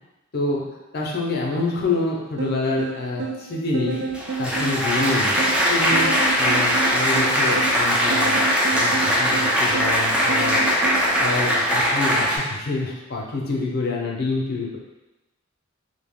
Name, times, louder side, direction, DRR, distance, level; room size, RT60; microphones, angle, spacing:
voice 1, 0.3-0.6 0.9-4.0 4.4-5.4 5.7-8.4 8.7-10.6 11.2-14.8, left 3 dB, 50° left, -1 dB, 0.6 m, -27 dB
sound 1, 2.4-11.1, right 5 dB, 80° right, 0.4 m, -30 dB
Applause, 3.9-12.4, equal, 5° right, 0.4 m, -20 dB
2.8 x 2.1 x 3.5 m, 1.0 s
head